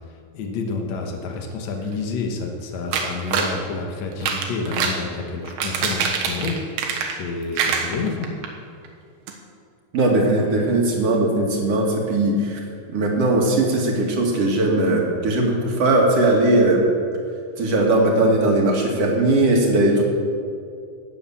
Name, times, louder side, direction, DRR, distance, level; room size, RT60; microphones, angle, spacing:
voice 1, 0.3-8.3 19.9-20.0, left 4 dB, 75° left, 3 dB, 1.6 m, -29 dB
sound 1, 2.9-3.6 4.1-5.0 5.5-7.3 7.6-8.5 8.9-9.0 9.3-9.4, right 6 dB, 85° right, 3.6 m, -24 dB
voice 2, 9.9-12.6 12.9-16.8 17.6-20.0, right 2 dB, 45° right, 0 dB, 2.1 m, -19 dB
18.5 x 7.3 x 7.2 m, 2.3 s
omnidirectional pair, 5.2 m